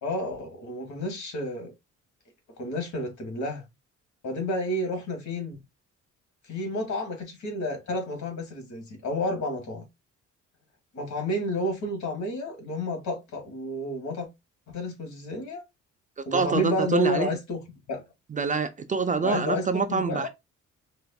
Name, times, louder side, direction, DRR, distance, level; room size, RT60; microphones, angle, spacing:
voice 1, 0.0-1.7 2.6-3.6 4.2-5.6 6.5-9.8 10.9-14.3 14.7-15.6 16.2-17.6 17.9-18.0 19.2-20.3, left 1 dB, 65° left, 1.6 m, -30 dB
voice 2, 16.3-17.4 18.3-20.3, right 5 dB, 25° right, 0.4 m, -26 dB
4.7 x 2.4 x 2.3 m
cardioid pair, 90°, 30 cm